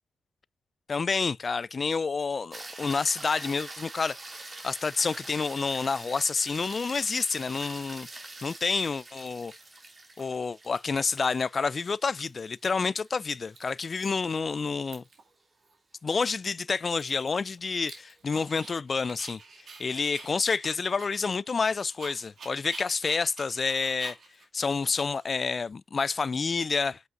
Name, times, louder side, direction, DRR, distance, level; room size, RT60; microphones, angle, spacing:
voice 1, 0.9-9.5 10.2-15.0 16.0-19.4 19.8-24.2 24.5-27.0, left 4 dB, 50° left, 0.3 m, -29 dB
sound 1, 2.5-14.9 19.4-19.5, right 2 dB, 35° right, 2.3 m, -45 dB
Dog, 10.4-10.5 11.1-11.6 11.9-12.7 13.0-13.1 13.3-14.4 14.6-15.3 15.7-15.8 16.1-18.8 19.1-25.7, right 4 dB, 70° right, 2.2 m, -49 dB
8.0 x 5.2 x 2.5 m
cardioid pair, 75°, 0 cm